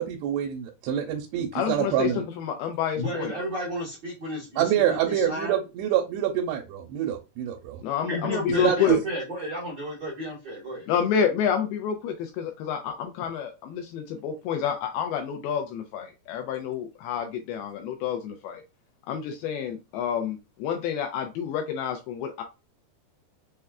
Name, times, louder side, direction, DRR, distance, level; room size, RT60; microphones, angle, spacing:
voice 1, 0.0-2.3 4.6-7.8 8.6-9.0, right 10 dB, 85° right, 2.6 m, -26 dB
voice 2, 1.5-3.3 7.8-9.0 10.9-18.6 19.1-22.4, left 8 dB, 80° left, 2.4 m, -29 dB
voice 3, 3.0-5.0 5.3-5.6 8.1-10.9, equal, 60° right, 1.1 m, -32 dB
6.4 x 2.2 x 2.3 m
omnidirectional pair, 4.6 m